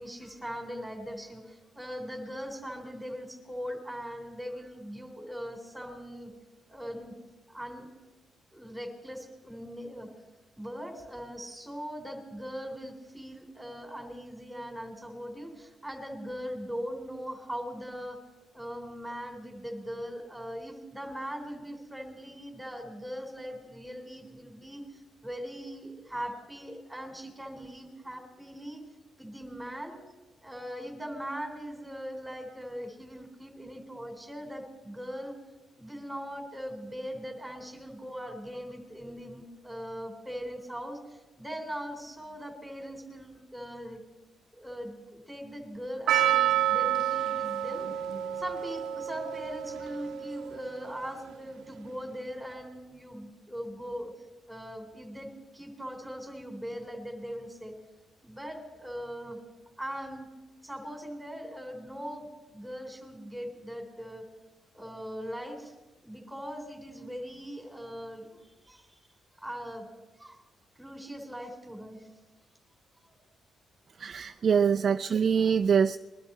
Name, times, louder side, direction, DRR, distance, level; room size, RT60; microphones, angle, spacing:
voice 1, 0.0-6.3 6.7-7.1 7.5-7.9 8.5-10.1 10.6-18.2 18.5-28.8 29.2-30.0 30.4-35.3 35.8-44.0 44.5-47.9 48.4-54.1 54.5-57.7 58.2-59.4 59.8-60.3 60.6-64.3 64.7-65.7 66.0-69.0 69.4-69.9 70.2-70.4 70.8-72.1 73.0-73.2, equal, 5° right, 3 dB, 3.5 m, -40 dB
Percussion, 46.1-51.0, right 11 dB, 80° right, 0.8 m, -29 dB
voice 2, 74.0-76.0, right 7 dB, 50° right, 8 dB, 0.4 m, -24 dB
22.0 x 12.0 x 4.3 m, 1.2 s
cardioid pair, 85°, 0 cm